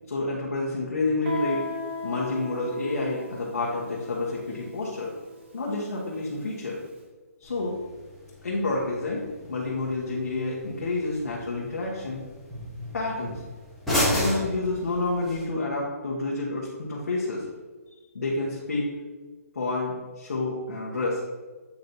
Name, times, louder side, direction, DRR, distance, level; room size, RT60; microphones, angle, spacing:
voice 1, 0.1-1.6 2.0-5.1 5.5-6.8 7.4-7.8 8.4-12.2 12.9-13.4 14.1-17.4 18.1-18.9 19.5-21.2, left 2 dB, 80° left, -5 dB, 1.5 m, -29 dB
Guitar, 1.3-6.7, left 2 dB, 45° right, 0.9 m, -38 dB
sound 1, 7.4-15.4, left 1 dB, ahead, 1.1 m, -33 dB
8.5 x 3.1 x 4.1 m, 1.3 s
hypercardioid pair, 175°, 9 cm